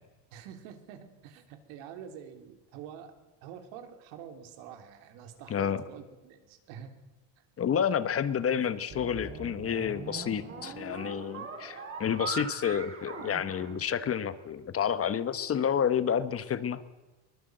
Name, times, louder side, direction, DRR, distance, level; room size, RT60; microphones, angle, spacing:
voice 1, 0.3-3.1 3.4-7.0, right 8 dB, 85° right, 7 dB, 3.5 m, -46 dB
voice 2, 5.5-5.8 7.6-16.8, left 8 dB, 30° left, 14 dB, 1.2 m, -29 dB
sound 1, 8.9-14.4, right 5 dB, 30° right, 4.4 m, -41 dB
23.5 x 20.0 x 7.9 m, 1.2 s
cardioid pair, 145°, 45 cm